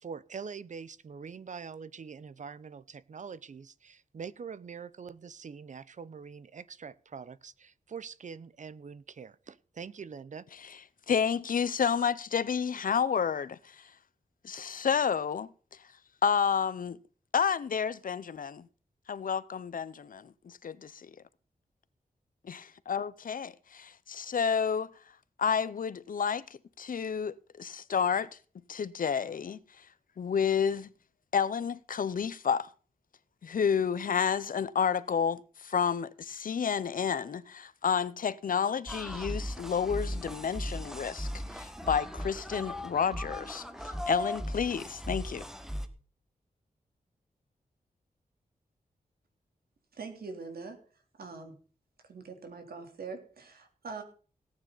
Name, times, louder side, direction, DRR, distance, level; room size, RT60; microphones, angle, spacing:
voice 1, 0.0-10.4, right 6 dB, 55° right, 0.8 m, -44 dB
voice 2, 11.1-13.9 14.4-15.5 16.2-17.0 17.3-18.7 19.1-21.1 22.5-24.9 25.4-26.4 26.8-28.3 28.7-29.8 30.2-30.9 31.3-32.7 33.4-43.7 44.1-45.4, left 7 dB, 65° left, 0.8 m, -30 dB
sound 1, 38.9-45.9, equal, 5° right, 1.4 m, -37 dB
voice 3, 49.9-50.8 51.2-51.6 52.1-54.0, right 4 dB, 85° right, 3.4 m, -43 dB
17.5 x 9.6 x 4.1 m
wide cardioid pair, 140°, 15 cm